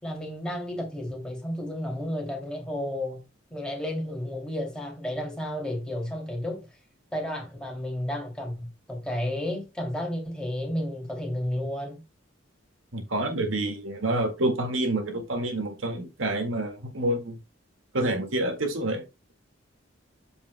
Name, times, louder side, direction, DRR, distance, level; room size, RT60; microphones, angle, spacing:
voice 1, 0.0-3.2 3.5-6.7 7.1-12.0, left 1 dB, 5° left, 2.7 m, -32 dB
voice 2, 12.9-17.4 17.9-19.1, right 1 dB, 85° right, 2.0 m, -28 dB
13.0 x 5.3 x 2.2 m
head